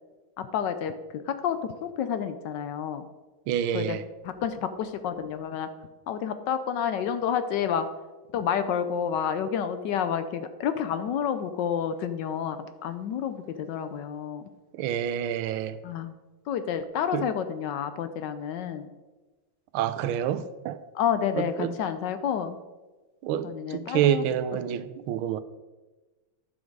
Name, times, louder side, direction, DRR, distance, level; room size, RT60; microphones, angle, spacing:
voice 1, 0.4-3.1 3.7-4.0 4.2-5.7 6.1-7.9 8.3-14.5 15.8-16.2 16.5-18.9 20.9-22.6 23.4-24.3 24.5-24.6, left 8 dB, 70° left, 1.1 m, -29 dB
voice 2, 3.5-4.0 14.7-15.8 17.1-17.3 19.7-20.8 21.3-21.7 23.2-25.4, right 10 dB, 90° right, 1.5 m, -28 dB
10.5 x 6.4 x 4.6 m
omnidirectional pair, 2.2 m